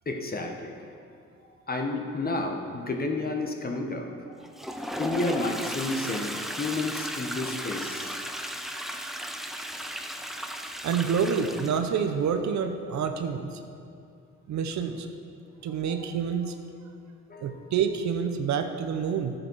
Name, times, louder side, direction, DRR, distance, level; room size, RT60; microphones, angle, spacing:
voice 1, 0.0-0.8 1.7-4.3 5.0-8.2 15.8-15.9 17.3-17.7, left 2 dB, 30° left, 3 dB, 1.4 m, -31 dB
Toilet flush, 4.4-12.0, equal, ahead, 0.7 m, -35 dB
voice 2, 10.8-13.5 14.5-15.1 15.6-16.5 17.4-19.3, right 6 dB, 70° right, 7 dB, 0.9 m, -27 dB
12.5 x 8.9 x 4.7 m, 2.4 s
cardioid pair, 90°, 30 cm